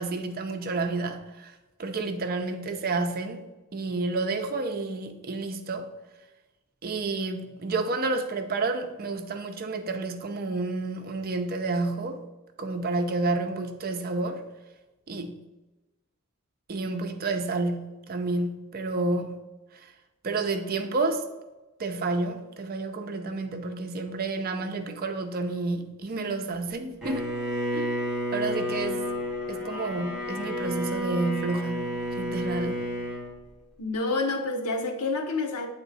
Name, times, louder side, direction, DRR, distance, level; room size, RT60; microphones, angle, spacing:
voice 1, 0.0-1.5 1.8-3.4 3.7-5.9 6.8-12.2 12.6-14.4 15.1-15.5 16.7-19.4 20.2-21.2 21.8-27.3 27.7-27.9 28.3-29.1 29.5-32.9, right 3 dB, 40° right, 0.5 m, -30 dB
Bowed string instrument, 27.0-33.3, equal, 5° right, 1.8 m, -31 dB
voice 2, 33.8-35.7, left 3 dB, 90° left, 0.9 m, -28 dB
8.0 x 3.6 x 4.0 m
head